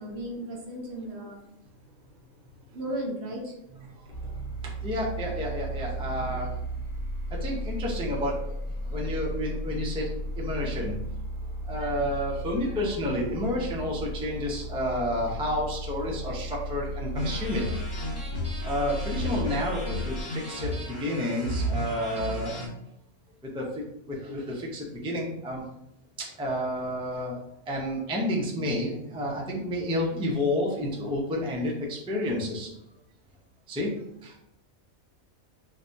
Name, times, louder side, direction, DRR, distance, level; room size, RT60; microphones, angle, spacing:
voice 1, 0.0-1.4 2.7-3.5, right 1 dB, 60° right, -1 dB, 0.9 m, -35 dB
voice 2, 3.9-6.5 7.4-8.5 8.8-10.0 10.4-11.0 11.7-17.6 18.6-22.5 23.5-23.6 24.1-25.6 26.2-27.4 27.7-32.7 33.7-33.9 34.2-34.4, left 1 dB, 10° right, -3 dB, 0.3 m, -30 dB
sound 1, 4.1-20.2, right 1 dB, 65° left, 1.5 m, -35 dB
sound 2, 17.1-22.7, left 1 dB, 50° left, 1.3 m, -33 dB
4.8 x 2.2 x 2.6 m, 0.81 s
omnidirectional pair, 1.4 m